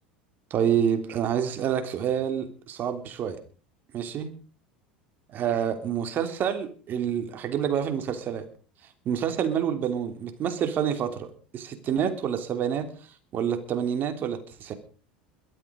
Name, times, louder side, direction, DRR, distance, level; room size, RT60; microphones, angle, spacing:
voice 1, 0.5-3.4 3.9-4.3 5.3-8.5 9.0-12.9 13.3-14.7, right 8 dB, 40° right, 8 dB, 3.2 m, -28 dB
22.5 x 8.5 x 5.4 m, 0.40 s
figure-of-eight pair, 75°, 5 cm